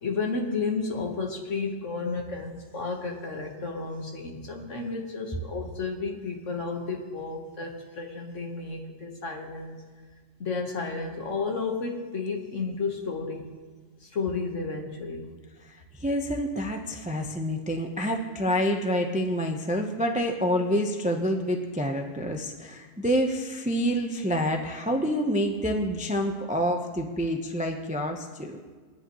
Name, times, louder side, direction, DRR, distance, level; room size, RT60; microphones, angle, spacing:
voice 1, 0.0-9.8 10.4-13.5 14.1-15.3, left 4 dB, 50° left, 2 dB, 1.6 m, -32 dB
voice 2, 15.7-28.6, equal, 10° right, 3 dB, 0.4 m, -27 dB
20.0 x 10.5 x 3.1 m, 1.5 s
omnidirectional pair, 1.7 m